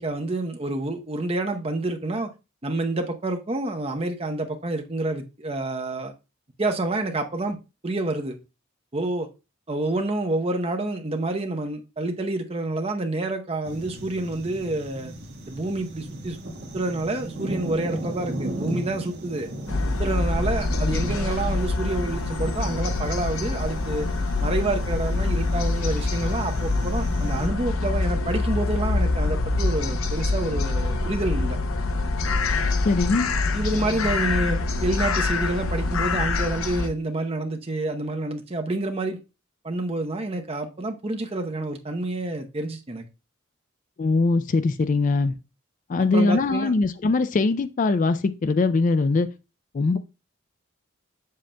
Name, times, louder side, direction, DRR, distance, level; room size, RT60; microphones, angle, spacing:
voice 1, 0.0-2.3 2.6-6.1 6.6-7.6 7.8-8.4 8.9-9.3 9.7-15.1 15.5-16.4 16.7-19.5 20.0-24.1 24.4-31.6 33.5-39.2 39.6-43.0 46.1-46.7, right 2 dB, 30° right, 0.8 m, -28 dB
sound 1, 13.6-27.5, right 1 dB, 50° right, 1.3 m, -36 dB
sound 2, 19.7-36.9, left 3 dB, 80° left, 0.7 m, -25 dB
voice 2, 32.8-33.3 44.0-45.4 45.9-49.3 49.7-50.0, left 3 dB, 40° left, 0.3 m, -21 dB
7.5 x 7.1 x 2.2 m
head